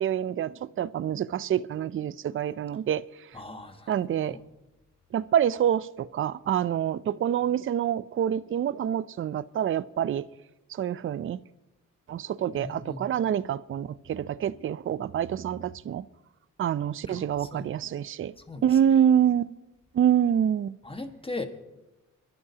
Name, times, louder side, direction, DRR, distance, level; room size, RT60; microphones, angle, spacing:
voice 1, 0.0-3.0 3.9-4.4 5.1-10.2 10.7-11.4 12.1-16.0 16.6-18.3 18.6-19.5 19.9-20.7, right 9 dB, 40° right, 0.4 m, -26 dB
voice 2, 3.3-4.4 12.5-13.1 17.1-17.7 18.5-18.8 20.8-21.5, left 2 dB, 15° left, 1.5 m, -39 dB
25.5 x 11.5 x 2.8 m
cardioid pair, 75°, 32 cm